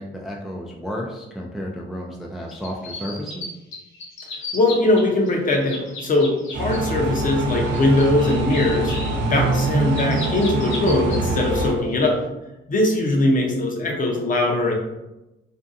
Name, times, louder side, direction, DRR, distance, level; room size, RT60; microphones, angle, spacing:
voice 1, 0.0-3.6, equal, ahead, -2 dB, 0.3 m, -32 dB
sound 1, 2.5-3.5 3.7-5.0 5.3-6.8 7.3-11.2 11.6-11.9, left 3 dB, 80° left, 0.9 m, -35 dB
voice 2, 4.5-8.9 9.2-12.2 12.7-14.7, left 2 dB, 45° left, 1 dB, 0.7 m, -20 dB
sound 2, 6.5-11.7, right 2 dB, 75° right, 0.7 m, -24 dB
2.6 x 2.2 x 2.5 m, 0.98 s
cardioid pair, 90°, 20 cm